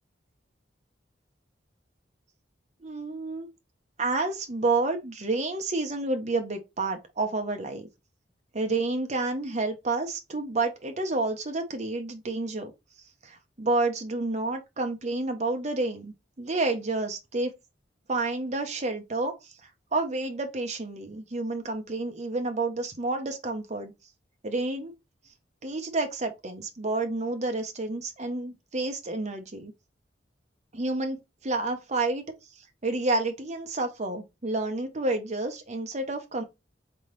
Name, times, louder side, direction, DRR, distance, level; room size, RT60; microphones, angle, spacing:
voice 1, 2.8-3.5 4.0-7.9 8.5-12.7 13.2-17.5 18.1-19.5 19.9-23.9 24.4-24.9 25.6-29.7 30.7-32.2 32.8-36.4, right 2 dB, 40° right, 1.0 m, -29 dB
3.9 x 3.5 x 3.1 m
head